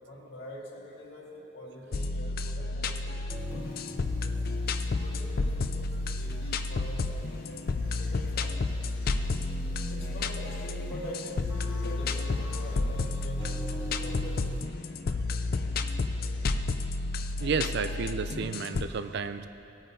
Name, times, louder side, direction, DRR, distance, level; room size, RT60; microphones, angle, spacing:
voice 1, 0.1-4.4 5.0-8.6 9.9-14.6, equal, 75° left, -5 dB, 1.8 m, -44 dB
sound 1, 1.9-18.9, left 3 dB, 50° left, 0.4 m, -31 dB
sound 2, 3.3-14.7, left 1 dB, 10° right, 1.0 m, -45 dB
voice 2, 17.4-19.5, right 5 dB, 65° right, 11 dB, 0.4 m, -31 dB
18.0 x 8.9 x 2.7 m, 3.0 s
head